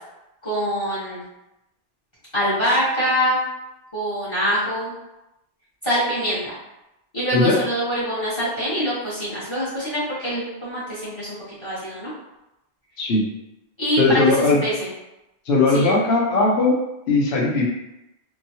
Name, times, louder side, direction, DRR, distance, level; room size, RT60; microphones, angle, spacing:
voice 1, 0.4-1.2 2.3-3.4 3.9-4.9 5.8-6.5 7.1-12.1 13.8-14.9 15.7-16.0, equal, 30° left, -10 dB, 1.1 m, -24 dB
voice 2, 14.0-14.6 15.5-16.8 17.1-17.7, left 3 dB, 80° left, -3 dB, 0.9 m, -18 dB
2.9 x 2.3 x 2.7 m, 0.92 s
omnidirectional pair, 1.0 m